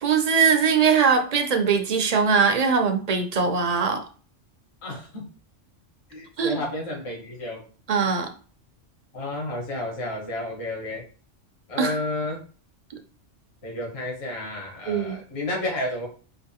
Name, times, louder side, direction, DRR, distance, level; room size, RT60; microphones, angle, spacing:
voice 1, 0.0-4.1 6.4-6.6 7.9-8.3 11.8-12.0 14.9-15.2, right 5 dB, 45° right, 6 dB, 0.5 m, -21 dB
voice 2, 4.8-5.3 6.1-7.6 9.1-11.1 11.7-12.4 13.6-16.1, left 1 dB, 60° left, -1 dB, 1.6 m, -31 dB
4.6 x 2.4 x 3.6 m, 0.39 s
omnidirectional pair, 1.3 m